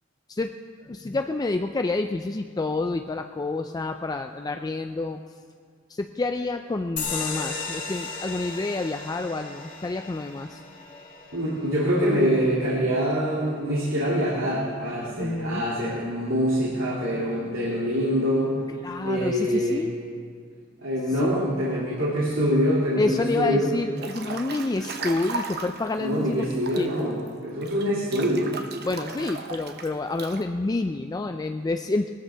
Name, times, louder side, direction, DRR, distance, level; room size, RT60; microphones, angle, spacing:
voice 1, 0.8-5.2 5.9-10.6 15.2-15.6 18.8-19.9 21.1-21.4 23.0-26.5 26.8-26.9 28.8-32.1, left 2 dB, 20° left, 6 dB, 0.3 m, -28 dB
sound 1, 7.0-14.0, left 4 dB, 40° left, 2.4 m, -36 dB
voice 2, 11.3-18.5 19.0-19.8 20.8-23.7 26.0-28.5, equal, 85° right, -6 dB, 2.5 m, -25 dB
Breathing / Bathtub (filling or washing) / Splash splatter, 24.0-25.9 26.4-30.4, right 3 dB, 55° right, 0.9 m, -36 dB
19.0 x 13.5 x 3.4 m, 2.1 s
head